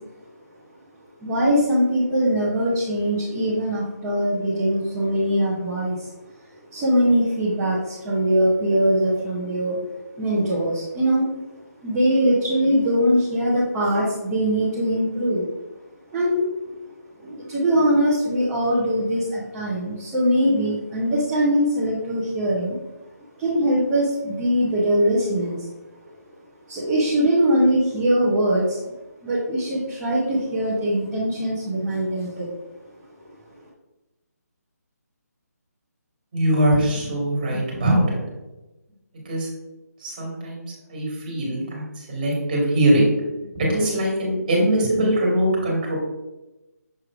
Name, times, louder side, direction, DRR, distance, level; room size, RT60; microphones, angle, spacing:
voice 1, 1.2-6.1 6.7-9.8 10.2-11.3 11.8-15.5 16.1-16.4 17.2-22.8 23.4-25.7 26.7-28.9 29.2-32.5, equal, 10° right, -9 dB, 0.8 m, -22 dB
voice 2, 36.3-38.2 39.1-39.5 40.0-40.6 40.9-43.1 43.5-46.0, right 1 dB, 25° right, -2 dB, 2.0 m, -22 dB
6.6 x 3.2 x 4.8 m, 1.0 s
hypercardioid pair, 170°, 9 cm